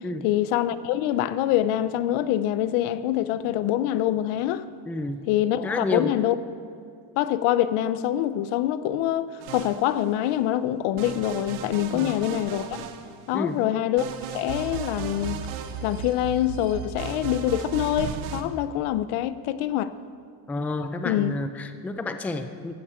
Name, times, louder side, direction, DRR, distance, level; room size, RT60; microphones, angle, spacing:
voice 1, 0.2-4.6 5.3-6.4 7.2-12.7 13.3-14.1 14.3-15.4 15.8-19.9 21.0-21.4, left 12 dB, 85° left, 0.8 m, -25 dB
voice 2, 4.9-5.2 5.6-6.1 11.9-12.1 13.3-13.6 20.5-22.7, left 2 dB, 5° left, 0.3 m, -30 dB
sound 1, 9.4-10.3 11.0-13.5 14.0-18.4, right 7 dB, 85° right, 1.3 m, -35 dB
15.0 x 13.5 x 4.4 m
cardioid pair, 150°, 48 cm